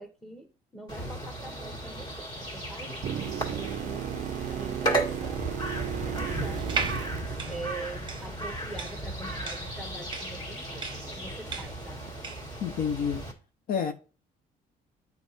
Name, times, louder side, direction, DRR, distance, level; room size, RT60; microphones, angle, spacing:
voice 1, 0.0-3.0 3.4-5.6 6.0-10.8 11.1-12.0, right 2 dB, ahead, 1.3 m, -44 dB
sound 1, 0.9-13.3, right 1 dB, 25° left, 1.9 m, -35 dB
sound 2, 3.0-8.1 12.1-12.2, right 11 dB, 45° right, 0.4 m, -35 dB
sound 3, 6.6-12.5, right 5 dB, 30° right, 0.9 m, -36 dB
voice 2, 12.6-13.2 13.7-13.9, left 7 dB, 60° left, 0.8 m, -28 dB
8.4 x 4.2 x 4.1 m
cardioid pair, 110°, 17 cm